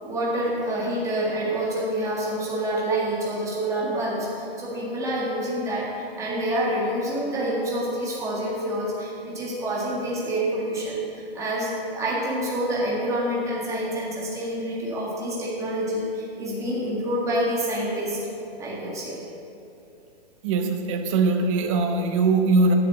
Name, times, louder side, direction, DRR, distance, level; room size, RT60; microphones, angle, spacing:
voice 1, 0.0-18.2 18.6-19.2, right 1 dB, 10° right, -6 dB, 1.8 m, -27 dB
voice 2, 20.4-22.7, right 3 dB, 30° right, 5 dB, 0.8 m, -21 dB
9.2 x 6.7 x 6.4 m, 2.7 s
hypercardioid pair, 145°, 32 cm